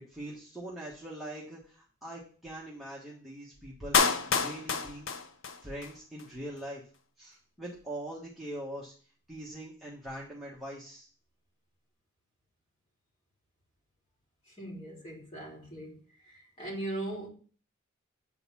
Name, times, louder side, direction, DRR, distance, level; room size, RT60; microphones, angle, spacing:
voice 1, 0.1-5.1 5.6-6.8 7.2-8.9 9.3-11.1, right 1 dB, ahead, 1.4 m, -42 dB
Clapping, 3.9-5.9 6.2-6.3, left 5 dB, 65° left, 0.7 m, -28 dB
voice 2, 14.6-16.0 16.6-17.3, right 1 dB, 25° left, 3.3 m, -38 dB
8.4 x 4.1 x 5.5 m
head